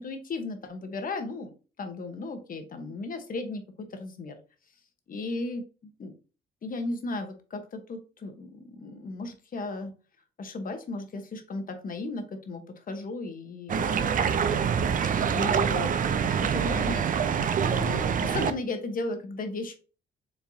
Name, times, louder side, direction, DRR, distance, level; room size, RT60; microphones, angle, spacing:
voice 1, 0.0-1.5 1.8-4.4 5.1-5.6 6.0-6.1 6.6-9.9 10.4-17.1 17.7-19.8, left 3 dB, 45° left, 7 dB, 1.0 m, -36 dB
sound 1, 13.7-18.5, right 7 dB, 45° right, 0.5 m, -25 dB
4.8 x 3.4 x 2.7 m, 0.35 s
cardioid pair, 90°, 20 cm